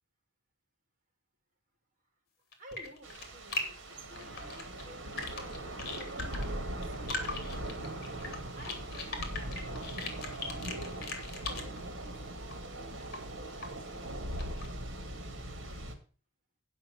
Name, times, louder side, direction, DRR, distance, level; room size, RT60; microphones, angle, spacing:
sound 1, 2.5-3.6 3.9-6.4 6.8-11.8 12.5-12.6 13.1-13.2 13.6-13.7 14.0-14.7, left 3 dB, 55° left, 2.8 m, -39 dB
voice 1, 2.6-7.5 8.1-10.1 10.4-14.2, equal, 45° right, 3 dB, 3.3 m, -53 dB
Thunder / Rain, 3.0-15.9, right 1 dB, 65° right, 2.0 m, -40 dB
10.0 x 5.7 x 7.0 m, 0.38 s
head